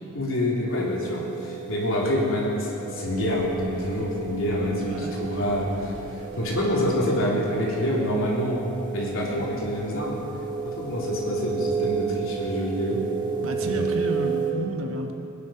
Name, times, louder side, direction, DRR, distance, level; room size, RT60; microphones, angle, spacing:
voice 1, 0.1-8.6 8.9-10.2 10.6-13.0 13.6-13.9, equal, 60° left, -4 dB, 3.4 m, -27 dB
sound 1, 0.7-14.5, right 6 dB, 20° right, 1.9 m, -32 dB
sound 2, 3.1-12.6, equal, 40° right, 4.0 m, -48 dB
voice 2, 4.8-5.5 13.4-15.1, right 1 dB, 65° right, 3 dB, 1.5 m, -32 dB
21.5 x 10.5 x 5.9 m, 2.9 s
head